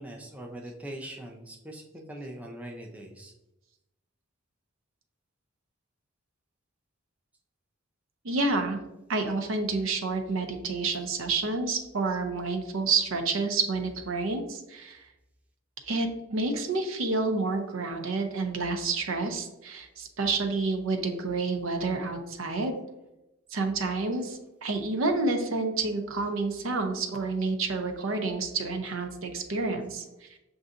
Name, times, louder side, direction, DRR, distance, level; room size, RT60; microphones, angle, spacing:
voice 1, 0.0-3.3, right 1 dB, 5° right, 0 dB, 0.5 m, -41 dB
voice 2, 8.2-8.8 9.1-15.0 15.9-22.7 23.5-30.3, right 3 dB, 70° right, 5 dB, 0.6 m, -29 dB
6.8 x 2.6 x 2.5 m, 0.92 s
head